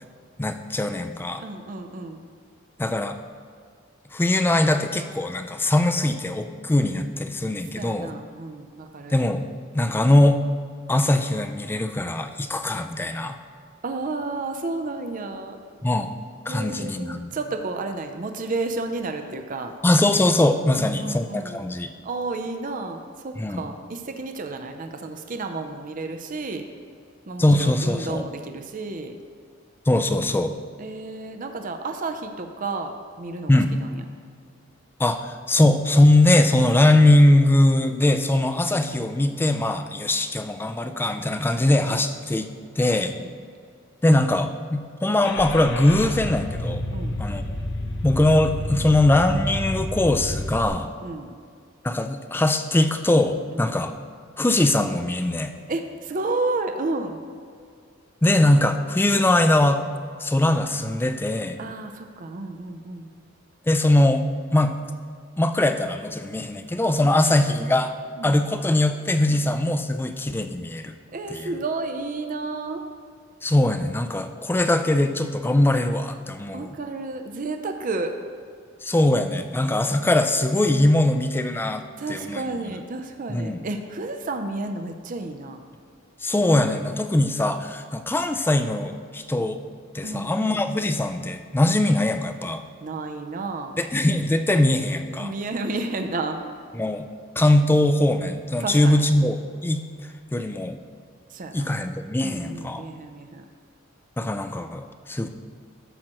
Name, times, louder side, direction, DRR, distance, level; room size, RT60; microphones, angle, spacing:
voice 1, 0.4-1.4 2.8-3.2 4.1-8.1 9.1-9.4 9.7-10.4 10.9-13.4 15.8-16.1 16.5-17.3 19.8-21.9 23.4-23.6 27.4-28.2 29.9-30.5 33.5-33.7 35.0-42.5 42.8-43.1 44.0-46.8 47.2-47.4 48.0-50.9 51.8-53.9 54.4-55.5 58.2-59.8 60.2-61.6 63.7-64.2 64.5-64.7 65.4-67.9 68.2-70.9 71.3-71.5 73.4-76.8 78.8-81.8 82.1-82.4 83.3-83.6 86.2-89.6 89.9-92.6 93.8-95.3 96.7-97.1 97.4-99.8 100.3-100.8 101.5-102.9 104.2-105.3, left 1 dB, 10° left, 8 dB, 0.4 m, -21 dB
voice 2, 1.4-2.2 7.8-9.1 13.8-15.6 16.5-19.7 20.7-21.6 22.0-26.6 27.3-29.1 30.8-34.0 43.2-43.3 46.9-47.2 51.0-51.4 53.5-53.6 55.7-57.2 61.6-63.1 67.1-67.2 68.2-68.4 69.3-69.5 71.1-72.8 76.5-78.1 82.0-85.6 90.0-90.9 92.8-93.8 95.1-96.4 98.6-99.0 101.3-101.7 102.2-103.4, right 3 dB, 40° right, 6 dB, 0.5 m, -31 dB
Car / Engine starting, 45.2-50.7, left 1 dB, 55° left, 0.7 m, -30 dB
12.0 x 7.5 x 3.0 m, 2.1 s
head